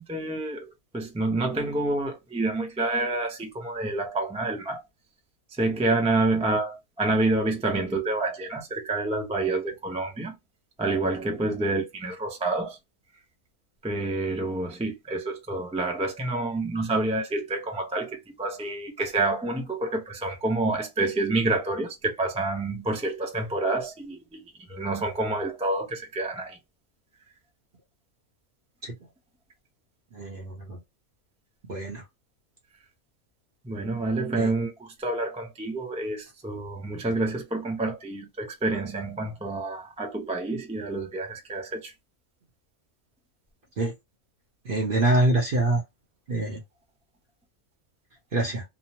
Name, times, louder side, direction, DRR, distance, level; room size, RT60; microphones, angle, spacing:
voice 1, 0.0-4.8 5.5-10.4 10.8-12.8 13.8-26.6 33.6-41.9, right 2 dB, 10° right, 0.4 m, -28 dB
voice 2, 30.1-30.8 31.7-32.0 34.4-34.5 43.8-43.9 44.7-45.8 46.3-46.6 48.3-48.6, right 2 dB, 50° right, 0.8 m, -25 dB
3.0 x 2.0 x 2.8 m
omnidirectional pair, 1.5 m